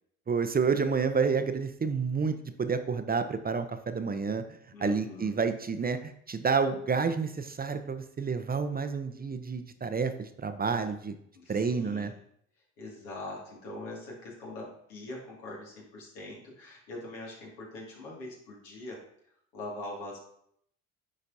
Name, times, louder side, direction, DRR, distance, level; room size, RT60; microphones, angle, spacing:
voice 1, 0.3-4.4 4.8-11.2 11.5-12.1, right 5 dB, 25° right, 9 dB, 0.6 m, -29 dB
voice 2, 4.7-5.3 11.3-12.1 12.8-19.0 19.5-20.2, left 2 dB, 85° left, -3 dB, 2.2 m, -42 dB
10.0 x 4.1 x 2.7 m, 0.69 s
hypercardioid pair, 65°, 39 cm